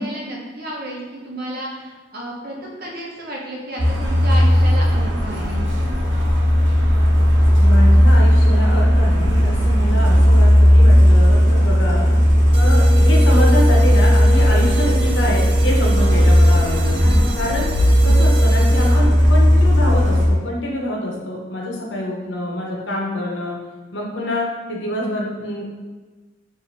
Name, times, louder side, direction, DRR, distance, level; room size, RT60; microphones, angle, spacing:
voice 1, 0.0-5.6 17.0-17.2 18.0-18.2 18.9-19.1, right 1 dB, 55° right, -2 dB, 1.0 m, -32 dB
Truck, 3.8-20.3, equal, 85° right, 0.9 m, -14 dB
voice 2, 7.6-12.1 12.5-17.0 17.4-17.7 18.0-23.6 23.9-25.6, left 1 dB, 75° left, -2 dB, 0.9 m, -26 dB
sound 1, 12.5-19.3, equal, 30° right, 0.3 m, -30 dB
4.8 x 2.7 x 3.3 m, 1.3 s
head